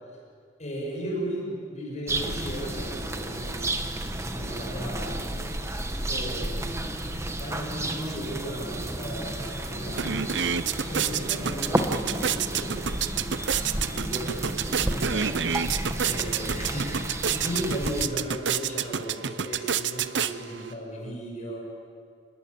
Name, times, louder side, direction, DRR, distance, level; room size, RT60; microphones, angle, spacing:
voice 1, 0.6-3.7 4.2-5.5 6.1-7.1 7.4-15.6 16.0-21.6, equal, 40° left, -2 dB, 7.2 m, -36 dB
sound 1, 2.1-18.1, right 1 dB, 15° right, 1.4 m, -32 dB
sound 2, 9.4-9.5 9.8-20.7, right 7 dB, 65° right, 0.7 m, -29 dB
28.5 x 21.0 x 8.8 m, 2.3 s
head